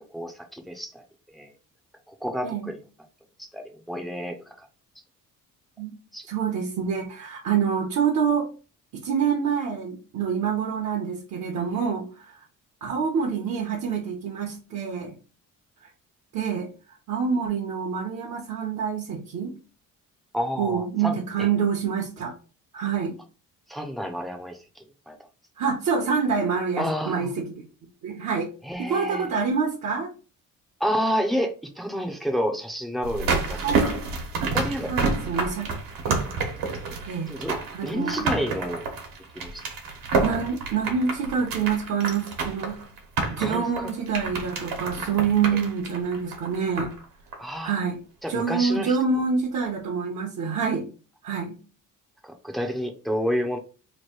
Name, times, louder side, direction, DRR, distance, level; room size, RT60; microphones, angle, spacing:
voice 1, 0.1-1.0 1.3-1.5 2.1-2.8 3.4-4.7 6.1-6.3 20.3-21.5 23.7-25.2 26.8-27.3 28.6-29.3 30.8-33.6 34.5-34.9 37.3-37.6 37.8-38.8 39.3-39.6 43.4-43.9 45.5-45.6 47.4-47.7 48.2-49.0 52.2-53.6, equal, ahead, 3 dB, 0.5 m, -30 dB
voice 2, 6.3-8.5 8.9-12.4 12.8-15.1 15.8-15.9 16.3-16.7 17.1-19.5 20.6-22.3 22.7-23.1 25.6-27.4 28.0-28.5 28.8-30.1 33.6-33.8 34.4-34.5 34.9-35.7 36.0-36.3 37.1-37.3 37.7-38.3 40.2-42.8 43.3-46.9 47.6-48.0 48.3-50.9 51.2-51.6, right 6 dB, 55° right, 0 dB, 0.8 m, -26 dB
sound 1, 33.0-47.0 47.3-47.4, right 4 dB, 80° right, 1.2 m, -29 dB
3.1 x 2.6 x 4.3 m, 0.36 s
cardioid pair, 155°, 33 cm